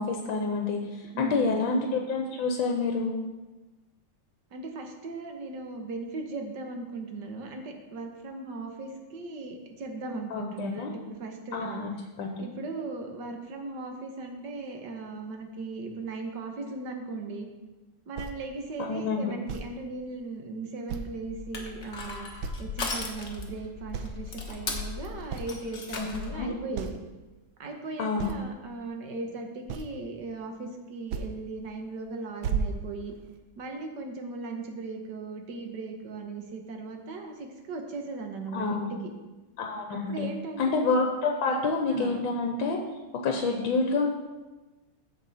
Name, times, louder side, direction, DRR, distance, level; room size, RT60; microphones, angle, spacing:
voice 1, 0.0-3.1 10.3-10.9 11.5-11.9 12.2-12.4 18.8-19.3 26.0-26.5 28.0-28.3 38.5-38.9 39.6-40.2 40.6-42.8 43.2-44.1, left 4 dB, 70° left, 2 dB, 1.6 m, -28 dB
voice 2, 1.1-1.7 4.5-11.9 12.4-17.5 18.1-22.3 22.6-27.0 27.6-33.1 33.6-39.0 39.9-40.7 41.5-41.6 41.9-42.2 43.4-43.6, right 3 dB, 60° right, 3 dB, 1.7 m, -38 dB
sound 1, 18.2-18.4 19.5-19.7 20.9-21.2 21.7-21.8 22.4-22.7 23.1-23.6 23.9-24.2 24.9-25.0 25.3-25.5 26.3-26.4 26.7-27.0 28.2-28.4 29.7-30.1 31.1-31.3 31.7-32.0 32.4-33.4, right 6 dB, 75° right, 1.4 m, -33 dB
Crushing, 21.2-26.5, left 4 dB, 40° left, 1.3 m, -37 dB
15.5 x 5.4 x 4.2 m, 1.2 s
omnidirectional pair, 2.3 m